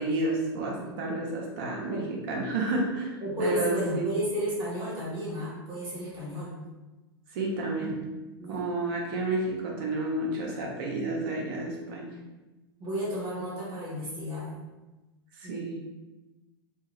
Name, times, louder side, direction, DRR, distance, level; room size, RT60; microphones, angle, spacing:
voice 1, 0.0-3.1 3.4-4.1 7.3-8.0 8.5-12.1 15.4-15.8, right 2 dB, 60° right, -2 dB, 0.8 m, -30 dB
voice 2, 3.2-6.5 8.4-8.7 12.8-14.6 15.4-15.8, equal, 30° right, -7 dB, 1.2 m, -33 dB
2.6 x 2.4 x 3.1 m, 1.1 s
hypercardioid pair, 100°, 13 cm